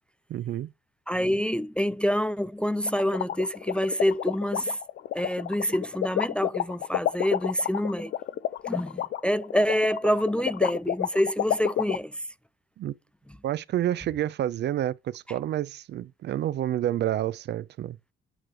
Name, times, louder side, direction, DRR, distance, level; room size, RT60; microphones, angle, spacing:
voice 1, 0.3-0.7 12.8-12.9 13.4-18.0, right 12 dB, 60° right, 0.4 m, -29 dB
voice 2, 1.1-4.8 5.1-8.1 8.6-12.2 15.3-15.4, equal, 5° left, 0.3 m, -27 dB
sound 1, 2.9-12.0, left 12 dB, 60° left, 0.5 m, -29 dB
9.0 x 3.1 x 4.8 m
cardioid pair, 90°, 20 cm